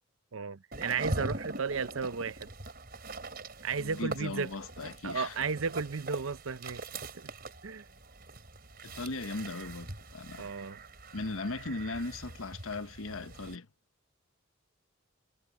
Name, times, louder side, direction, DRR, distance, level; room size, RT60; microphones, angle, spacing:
voice 1, 0.3-2.5 3.6-4.5 5.0-6.8 7.2-7.3 7.6-7.8 10.4-10.8, right 5 dB, 80° right, 0.7 m, -34 dB
sound 1, 0.7-13.6, right 2 dB, 45° right, 4.8 m, -43 dB
voice 2, 3.8-5.4 8.8-10.5 11.1-13.7, left 3 dB, 85° left, 1.2 m, -38 dB
head